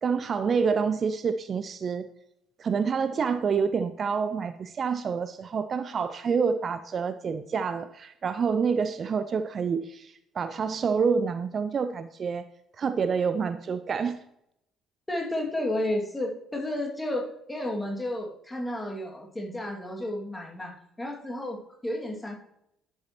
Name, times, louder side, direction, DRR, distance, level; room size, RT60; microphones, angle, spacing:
voice 1, 0.0-2.1 2.6-12.4 12.8-14.2, right 5 dB, 40° right, 12 dB, 0.4 m, -27 dB
voice 2, 15.1-22.4, left 1 dB, 15° left, 0 dB, 2.4 m, -32 dB
11.0 x 7.3 x 3.0 m, 0.77 s
figure-of-eight pair, 50°, 0 cm